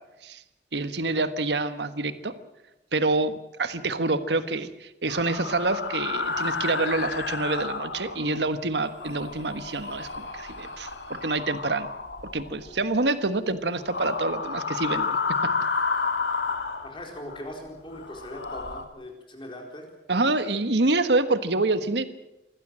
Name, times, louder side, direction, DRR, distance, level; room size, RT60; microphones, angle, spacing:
voice 1, 0.7-2.3 2.9-11.9 12.3-15.2 15.4-15.5 20.1-22.0, right 2 dB, 80° right, 11 dB, 1.4 m, -27 dB
sound 1, 5.1-8.5 8.9-12.9 13.8-17.4 17.9-18.8, left 4 dB, 85° left, 1.9 m, -31 dB
voice 2, 16.8-19.9, left 1 dB, 30° left, 2 dB, 4.3 m, -40 dB
24.5 x 16.0 x 7.7 m, 0.97 s
head